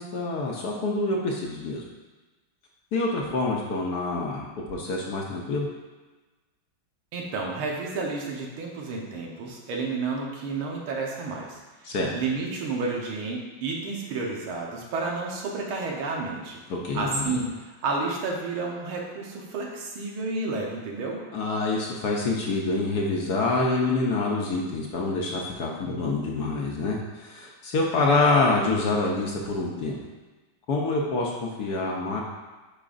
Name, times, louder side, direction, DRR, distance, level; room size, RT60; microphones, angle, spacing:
voice 1, 0.0-1.8 2.9-5.7 11.8-12.1 16.7-17.4 21.3-30.0 30.7-32.2, left 3 dB, 65° left, -2 dB, 1.1 m, -26 dB
voice 2, 7.1-11.6 12.1-16.6 16.9-21.2, right 3 dB, 90° right, -1 dB, 1.9 m, -31 dB
8.8 x 5.0 x 2.5 m, 1.2 s
omnidirectional pair, 2.2 m